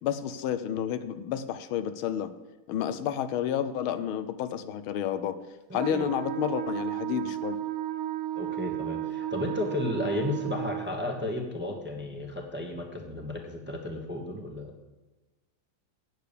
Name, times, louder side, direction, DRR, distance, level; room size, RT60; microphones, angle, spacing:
voice 1, 0.0-2.3 2.7-5.4 5.7-7.6, left 10 dB, 85° left, 12 dB, 1.6 m, -30 dB
voice 2, 5.7-6.1 8.3-14.7, left 1 dB, 10° right, 2 dB, 0.8 m, -33 dB
Wind instrument woodwind instrument, 5.8-10.9, right 13 dB, 80° right, 1.6 m, -33 dB
8.5 x 8.0 x 6.8 m, 1.2 s
omnidirectional pair, 2.2 m